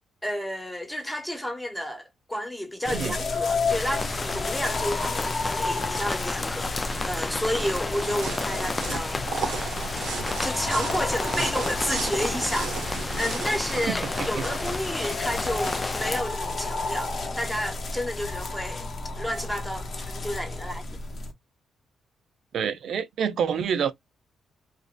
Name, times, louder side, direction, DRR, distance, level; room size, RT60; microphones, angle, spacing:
voice 1, 0.2-9.9 10.4-20.8, equal, 5° left, 1.0 m, -31 dB
sound 1, 2.8-21.3, left 3 dB, 45° left, 0.7 m, -32 dB
sound 2, 3.7-16.2, left 3 dB, 20° left, 0.3 m, -32 dB
sound 3, 6.4-17.3, right 5 dB, 90° right, 0.9 m, -36 dB
voice 2, 13.9-14.4 22.5-23.9, right 7 dB, 70° right, 0.5 m, -28 dB
3.1 x 2.6 x 2.2 m
cardioid pair, 100°, 0 cm